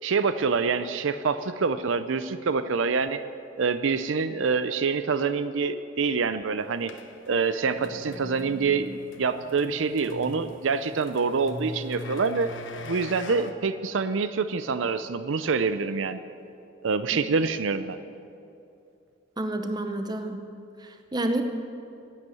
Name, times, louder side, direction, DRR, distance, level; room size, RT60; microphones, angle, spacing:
voice 1, 0.0-3.2 3.6-6.9 7.3-12.5 12.8-16.2 16.8-18.0, right 5 dB, 80° right, 12 dB, 0.5 m, -26 dB
sound 1, 6.8-13.5, left 2 dB, 75° left, 1.0 m, -41 dB
voice 2, 19.4-20.4 20.8-21.4, right 1 dB, 20° right, 7 dB, 0.8 m, -29 dB
11.5 x 9.3 x 9.2 m, 2.7 s
head